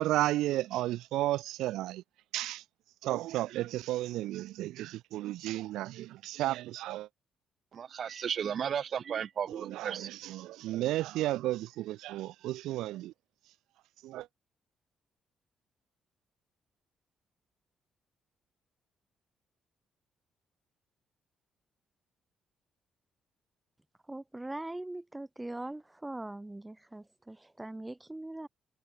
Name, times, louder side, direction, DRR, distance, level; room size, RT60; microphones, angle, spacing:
voice 1, 0.0-2.0 2.3-2.6 3.0-7.1 9.5-13.1 14.0-14.3, right 15 dB, 90° right, 1.6 m, -33 dB
voice 2, 7.7-10.1, right 8 dB, 55° right, 5.5 m, -34 dB
voice 3, 24.1-28.5, right 2 dB, 10° right, 2.5 m, -41 dB
cardioid pair, 90°, 0 cm